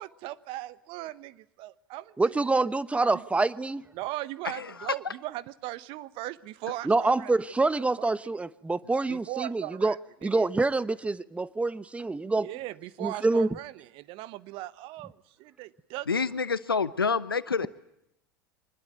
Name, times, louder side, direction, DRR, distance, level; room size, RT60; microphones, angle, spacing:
voice 1, 0.0-2.7 3.1-3.3 3.9-7.4 8.0-8.1 8.3-8.4 9.1-10.5 12.4-16.2, right 16 dB, 50° right, 1.1 m, -39 dB
voice 2, 2.2-3.8 6.9-9.9 10.2-12.5 13.0-13.5, right 3 dB, 10° right, 0.9 m, -26 dB
voice 3, 16.1-17.7, left 5 dB, 85° left, 1.0 m, -27 dB
24.5 x 21.0 x 9.1 m
figure-of-eight pair, 80°, 12 cm